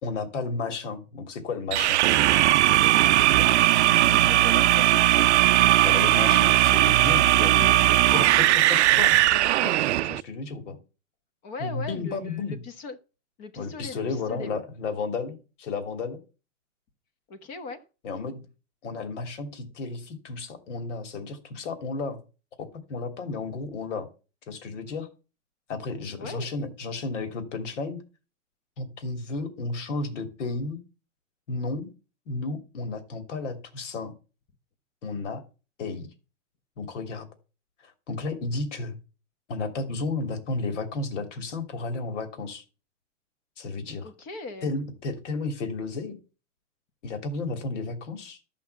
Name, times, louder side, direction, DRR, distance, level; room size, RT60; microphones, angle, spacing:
voice 1, 0.0-2.0 5.8-9.8 10.0-10.8 11.6-12.6 13.6-16.2 18.0-18.4 18.8-22.2 22.9-24.1 24.5-25.1 25.7-28.0 28.8-30.8 31.5-31.9 32.3-34.1 35.0-35.4 35.8-36.1 36.8-37.3 37.8-38.9 39.5-42.6 43.6-44.1 44.6-46.2 47.0-48.4, left 3 dB, 70° left, 3.0 m, -33 dB
sound 1, 1.7-10.2, right 15 dB, 60° right, 0.6 m, -19 dB
voice 2, 3.3-5.3 7.5-7.7 11.4-13.0 13.4-14.6 17.3-17.8 26.2-26.5 44.0-44.7, left 3 dB, 25° left, 1.1 m, -39 dB
13.5 x 6.0 x 7.1 m
supercardioid pair, 165°, 38 cm